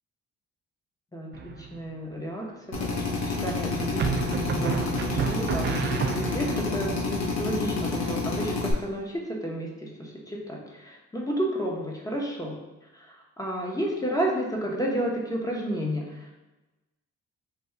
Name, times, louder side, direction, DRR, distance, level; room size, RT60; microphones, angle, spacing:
voice 1, 1.1-16.3, equal, 10° left, -2 dB, 0.9 m, -32 dB
sound 1, 1.3-1.9 4.0-6.7, right 7 dB, 40° right, 0.4 m, -30 dB
Drill, 2.7-8.7, left 3 dB, 60° left, 1.0 m, -29 dB
3.4 x 2.3 x 4.4 m, 1.1 s
cardioid pair, 90°, 30 cm